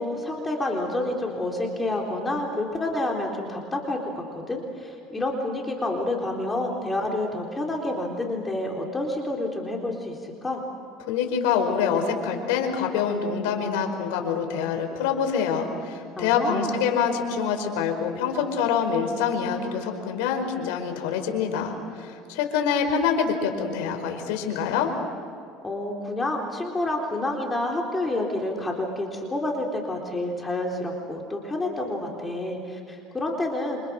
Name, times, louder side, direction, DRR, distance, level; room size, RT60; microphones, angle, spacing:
voice 1, 0.0-10.6 16.2-16.8 25.6-33.9, left 1 dB, 15° left, 0 dB, 3.9 m, -29 dB
voice 2, 11.1-24.9, left 7 dB, 85° left, 5 dB, 5.0 m, -25 dB
29.0 x 26.5 x 6.4 m, 2.5 s
supercardioid pair, 120°, 0 cm